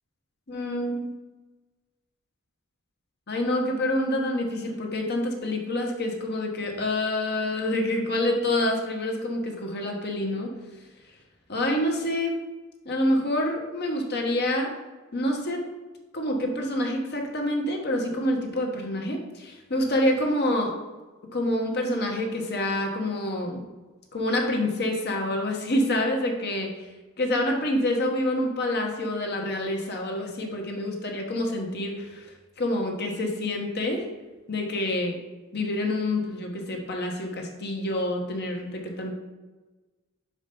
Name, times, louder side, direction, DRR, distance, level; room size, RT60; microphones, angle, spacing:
voice 1, 0.5-1.1 3.3-10.5 11.5-12.4 12.8-14.7 15.1-15.6 16.1-20.7 21.3-23.6 24.1-26.7 27.2-32.3 32.6-34.0 34.5-35.2 35.5-39.1, left 1 dB, 50° left, 1 dB, 1.2 m, -27 dB
5.6 x 5.0 x 5.3 m, 1.2 s
head